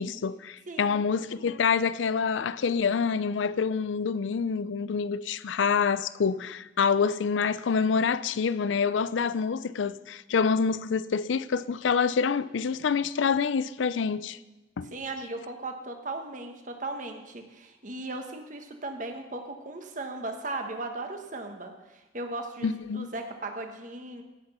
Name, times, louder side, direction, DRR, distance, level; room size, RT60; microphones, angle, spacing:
voice 1, 0.0-14.4 14.8-14.9 22.6-23.1, left 5 dB, 85° left, 0.4 m, -27 dB
voice 2, 0.7-1.0 14.9-24.2, right 2 dB, 45° right, 1.3 m, -37 dB
16.5 x 6.0 x 5.6 m
head